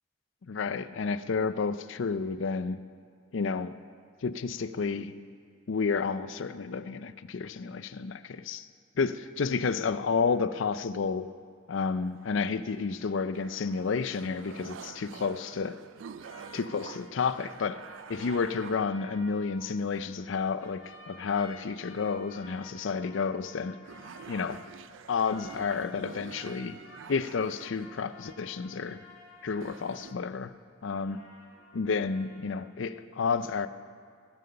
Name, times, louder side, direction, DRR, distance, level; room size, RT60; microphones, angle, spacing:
voice 1, 0.4-2.8 3.3-3.8 4.2-5.1 5.7-8.7 9.0-11.3 11.7-15.8 16.5-17.8 18.1-23.8 24.3-24.6 25.1-26.8 27.1-29.0 29.4-30.5 30.8-31.2 31.7-33.7, left 5 dB, 70° left, 14 dB, 0.5 m, -31 dB
sound 1, 12.0-12.9 13.3-18.8 19.7-20.3 20.6-20.7 21.3-22.4 23.1-23.2 23.5-23.6 23.8-28.2 29.1-29.2 29.5-30.1, right 7 dB, 70° right, 0.3 m, -48 dB
sound 2, 16.1-20.3 20.6-30.5 30.9-32.4, left 1 dB, 85° left, 1.9 m, -52 dB
18.5 x 7.8 x 5.6 m, 2.1 s
head